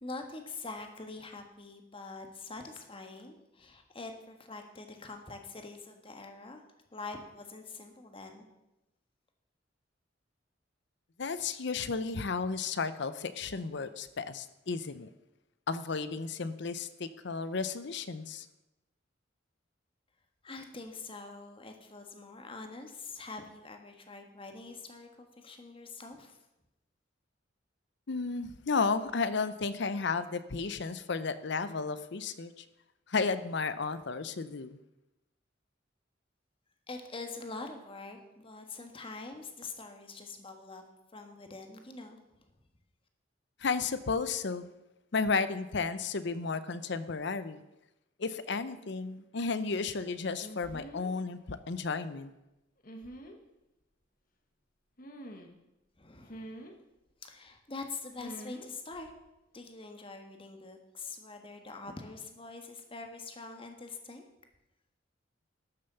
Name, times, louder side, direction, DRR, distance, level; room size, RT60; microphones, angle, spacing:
voice 1, 0.0-6.6 6.9-8.5 20.4-26.4 36.9-40.8 41.1-42.5 56.0-56.6 57.2-59.1 59.5-64.2, left 3 dB, 30° left, 5 dB, 1.5 m, -44 dB
voice 2, 11.2-15.1 15.7-18.5 28.1-32.6 33.1-34.8 43.6-44.7 45.1-47.6 48.2-52.3, left 4 dB, 65° left, 13 dB, 0.7 m, -33 dB
sound 1, 50.4-51.1 52.8-53.4 55.0-55.6 56.3-56.7 58.2-58.7 58.9-59.2, equal, 45° left, 1.4 m, -46 dB
12.5 x 6.8 x 6.9 m, 0.94 s
head